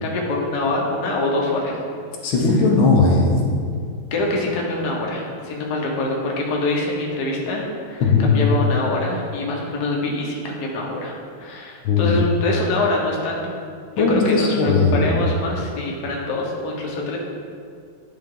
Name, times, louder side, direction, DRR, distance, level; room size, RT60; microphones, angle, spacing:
voice 1, 0.0-1.8 4.1-13.5 13.9-17.2, left 2 dB, 60° left, -1 dB, 1.4 m, -25 dB
voice 2, 2.2-3.4 8.0-8.3 11.8-12.1 14.0-15.1, left 4 dB, 80° left, -1 dB, 1.8 m, -17 dB
9.6 x 4.3 x 3.7 m, 2.2 s
omnidirectional pair, 2.2 m